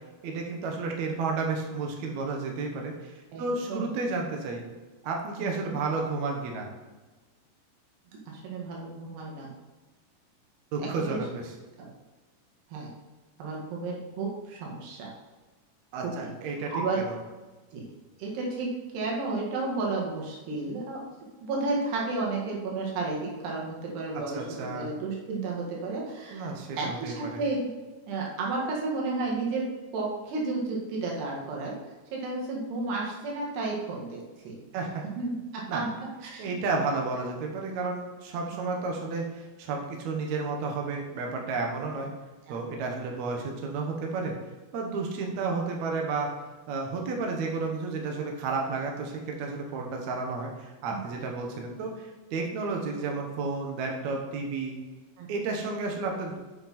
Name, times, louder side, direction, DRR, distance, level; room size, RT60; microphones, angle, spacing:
voice 1, 0.2-4.6 5.0-6.7 10.7-11.5 15.9-16.7 17.0-17.2 24.1-24.9 26.3-27.4 34.7-35.0 35.7-35.8 36.4-42.1 42.5-44.4 44.7-46.3 46.7-54.8 55.3-56.4, right 3 dB, 60° right, 1 dB, 2.0 m, -32 dB
voice 2, 3.3-3.9 5.4-5.7 8.1-9.5 10.8-11.2 11.8-11.9 12.7-12.9 13.4-15.1 16.0-16.3 16.7-17.0 17.7-17.9 18.2-21.0 21.4-24.4 24.7-27.7 28.1-29.7 29.9-31.8 32.1-34.6 35.2-35.9 36.2-36.5 42.5-42.6 50.9-51.2 55.2-55.3, right 3 dB, 90° right, -2 dB, 3.8 m, -32 dB
8.0 x 6.7 x 4.3 m, 1.3 s
omnidirectional pair, 4.5 m